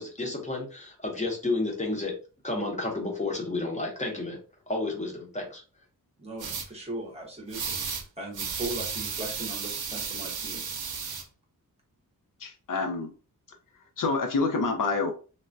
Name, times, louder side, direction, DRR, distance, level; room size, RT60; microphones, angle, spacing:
voice 1, 0.0-2.2 2.4-4.4 4.7-5.6, left 2 dB, 20° left, 0 dB, 0.7 m, -31 dB
voice 2, 6.2-10.6, right 1 dB, 15° right, -2 dB, 0.8 m, -38 dB
sound 1, 6.4-6.7 7.5-8.0 8.3-11.2, right 6 dB, 80° right, 0.7 m, -33 dB
voice 3, 12.4-13.1 14.0-15.1, left 4 dB, 60° left, 4 dB, 0.5 m, -27 dB
3.2 x 2.1 x 2.5 m, 0.36 s
wide cardioid pair, 175°, 36 cm